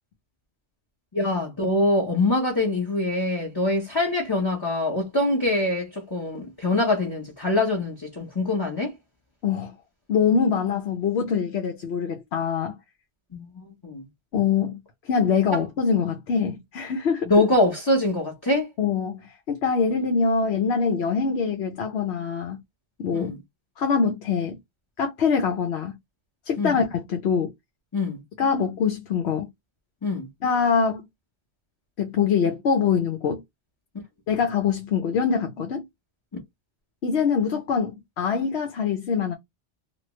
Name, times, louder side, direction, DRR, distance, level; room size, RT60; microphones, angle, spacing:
voice 1, 1.1-9.0 13.3-14.0 17.3-18.7 23.1-23.4 26.6-26.8 27.9-28.2 30.0-30.3, left 2 dB, 25° left, 1.1 m, -24 dB
voice 2, 9.4-9.7 10.1-12.8 14.3-17.3 18.8-22.6 23.0-23.3 23.8-24.6 25.0-26.0 26.5-27.5 28.4-29.5 30.4-31.0 32.0-33.4 34.3-35.8 37.0-39.3, left 6 dB, 80° left, 1.0 m, -24 dB
3.2 x 2.4 x 3.1 m
omnidirectional pair, 1.1 m